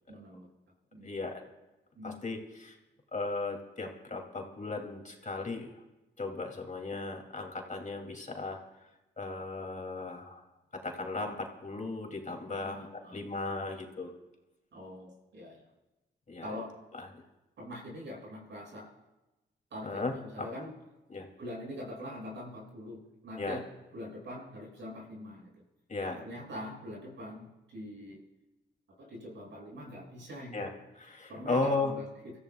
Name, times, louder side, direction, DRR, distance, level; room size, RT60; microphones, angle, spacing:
voice 1, 0.1-0.5 0.9-1.1 1.9-2.2 12.5-13.2 14.7-15.6 16.4-16.7 17.6-18.9 19.7-20.7 21.4-23.6 23.9-25.6 26.0-28.2 29.0-30.6 31.3-32.3, left 1 dB, 70° right, -3 dB, 6.7 m, -43 dB
voice 2, 1.0-1.4 2.0-2.8 3.1-5.7 6.2-8.6 9.2-10.4 10.7-14.1 16.3-16.5 16.9-17.2 19.8-20.1 20.4-20.5 21.1-21.3 23.4-23.6 25.9-26.2 30.5-30.7 31.0-31.9, left 3 dB, 40° left, 3 dB, 2.7 m, -36 dB
27.5 x 14.5 x 2.3 m, 1.0 s
cardioid pair, 55°, 20 cm